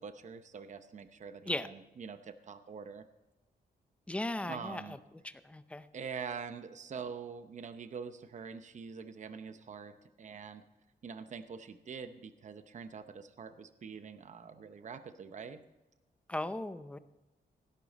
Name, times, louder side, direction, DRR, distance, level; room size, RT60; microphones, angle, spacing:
voice 1, 0.0-3.1 4.5-5.0 5.9-10.6 11.0-15.6, right 6 dB, 45° right, 10 dB, 0.7 m, -45 dB
voice 2, 4.1-4.8 5.2-5.8 16.3-17.0, left 1 dB, 5° left, 12 dB, 0.5 m, -37 dB
17.0 x 11.0 x 4.1 m, 1.1 s
wide cardioid pair, 150°, 17 cm